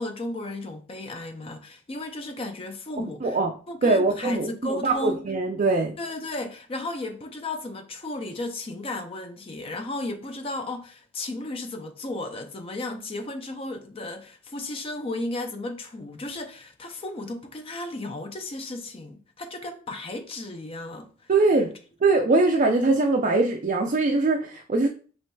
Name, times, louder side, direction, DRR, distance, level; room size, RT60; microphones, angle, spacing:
voice 1, 0.0-3.4 3.7-5.2 6.0-21.3, left 2 dB, 30° left, 0.4 m, -34 dB
voice 2, 3.0-3.5 3.8-5.9 21.3-21.7 22.0-24.9, right 3 dB, 40° right, 0.4 m, -22 dB
4.4 x 3.0 x 2.2 m
head